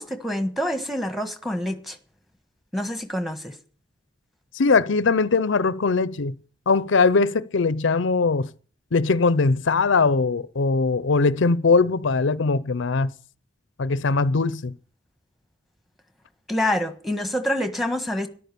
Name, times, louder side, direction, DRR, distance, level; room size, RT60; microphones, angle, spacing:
voice 1, 0.0-2.0 2.7-3.6 16.5-18.3, left 1 dB, ahead, 1.4 m, -26 dB
voice 2, 4.5-6.3 6.7-8.5 8.9-13.1 13.8-14.7, left 4 dB, 80° left, 0.6 m, -21 dB
13.5 x 11.5 x 6.9 m
head